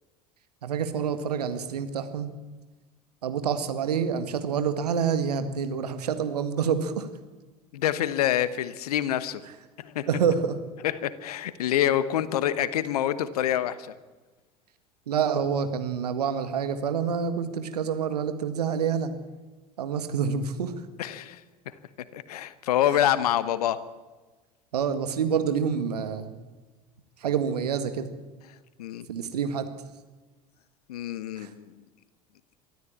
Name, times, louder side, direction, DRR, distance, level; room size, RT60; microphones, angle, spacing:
voice 1, 0.6-2.3 3.2-7.1 10.1-10.6 15.1-19.1 19.8-20.7 22.9-23.0 24.7-26.3 27.2-28.1 29.1-29.7 31.4-31.5, right 7 dB, 75° right, 9 dB, 1.8 m, -27 dB
voice 2, 7.7-9.4 9.8-10.1 10.8-13.9 21.0-21.4 22.1-23.8 28.8-29.1 30.9-31.7, left 11 dB, 70° left, 15 dB, 1.2 m, -26 dB
23.5 x 13.5 x 8.6 m, 1.3 s
figure-of-eight pair, 70°, 21 cm